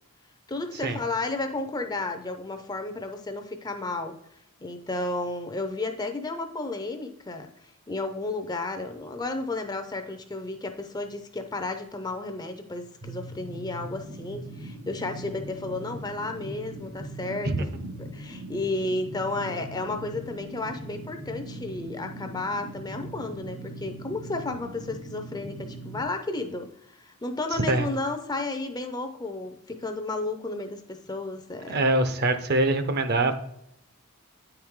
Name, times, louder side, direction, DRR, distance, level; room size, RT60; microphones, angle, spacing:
voice 1, 0.5-4.2 4.6-7.5 7.9-17.7 18.0-31.8, left 2 dB, 20° left, 6 dB, 0.5 m, -32 dB
sound 1, 13.0-26.0, right 1 dB, 75° right, 1.3 m, -40 dB
voice 2, 31.7-33.3, right 2 dB, 45° right, 9 dB, 0.6 m, -23 dB
9.0 x 4.6 x 3.6 m, 0.75 s
head